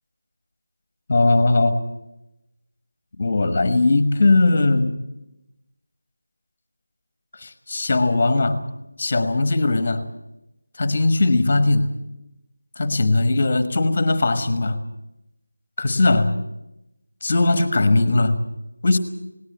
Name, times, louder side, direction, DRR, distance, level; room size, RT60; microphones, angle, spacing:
voice 1, 1.1-1.8 3.2-5.0 7.4-8.6 9.0-10.0 10.8-11.9 12.8-14.8 15.8-16.4 17.2-18.4 18.8-19.0, left 2 dB, 20° left, 11 dB, 1.3 m, -19 dB
19.0 x 18.0 x 9.2 m, 0.90 s
figure-of-eight pair, 180°, 0 cm